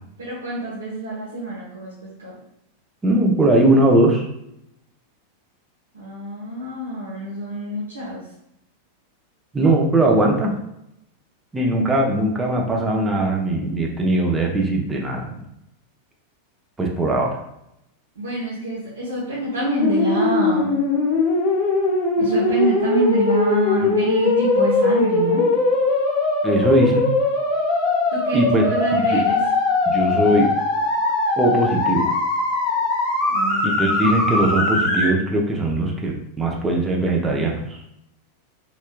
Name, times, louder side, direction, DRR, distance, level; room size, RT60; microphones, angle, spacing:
voice 1, 0.2-2.4 5.9-8.2 18.2-20.8 22.2-25.5 28.1-29.4 33.3-34.0, right 1 dB, 70° right, -8 dB, 0.9 m, -26 dB
voice 2, 3.0-4.3 9.5-10.6 11.5-15.4 16.8-17.3 26.4-27.1 28.3-28.6 28.9-29.2 29.9-30.5 31.4-32.1 33.6-37.8, right 1 dB, 15° right, 0 dB, 0.6 m, -20 dB
sound 1, 19.6-35.1, left 3 dB, 35° left, 0.7 m, -20 dB
3.3 x 3.1 x 2.3 m, 0.79 s
figure-of-eight pair, 90°, 0 cm